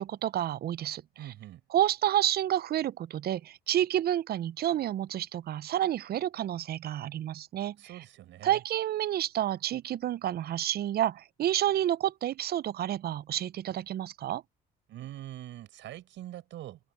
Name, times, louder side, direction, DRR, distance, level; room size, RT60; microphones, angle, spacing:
voice 1, 0.0-1.0 1.7-7.8 8.4-14.4, right 12 dB, 50° right, 0.6 m, -29 dB
voice 2, 1.2-1.6 7.8-8.6 14.9-16.8, right 13 dB, 70° right, 6.8 m, -43 dB
open air
supercardioid pair, 70°, 20 cm